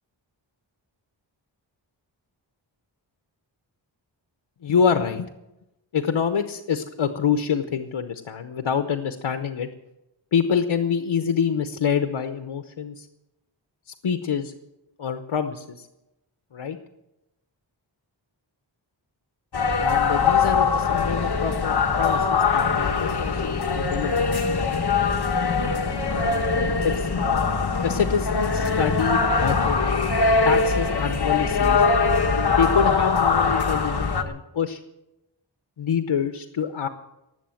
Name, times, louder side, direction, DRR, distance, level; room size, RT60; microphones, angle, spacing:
voice 1, 4.6-5.3 5.9-9.7 10.3-13.1 13.9-14.5 15.0-15.9 16.5-16.8 19.8-24.2 26.1-27.1 27.8-29.8 30.4-31.8 32.6-34.8 35.8-36.9, left 7 dB, 80° left, 8 dB, 0.9 m, -26 dB
sound 1, 19.5-34.2, left 4 dB, 55° left, 1.4 m, -22 dB
19.0 x 7.7 x 7.7 m, 0.93 s
wide cardioid pair, 75°, 46 cm